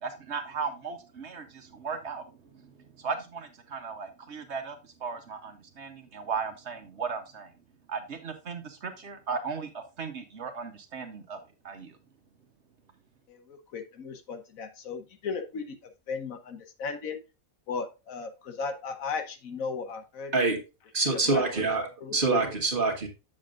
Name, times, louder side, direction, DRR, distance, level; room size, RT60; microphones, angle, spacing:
voice 1, 0.0-2.6 3.0-7.5 7.9-11.4 11.6-12.0, right 5 dB, 55° right, 7 dB, 1.2 m, -36 dB
voice 2, 13.3-15.8 16.1-17.2 17.7-20.3 21.1-21.4 22.0-22.4, left 5 dB, 75° left, 8 dB, 1.4 m, -36 dB
voice 3, 20.9-23.1, right 3 dB, 40° right, 2 dB, 1.6 m, -26 dB
7.5 x 7.0 x 2.5 m, 0.28 s
omnidirectional pair, 1.4 m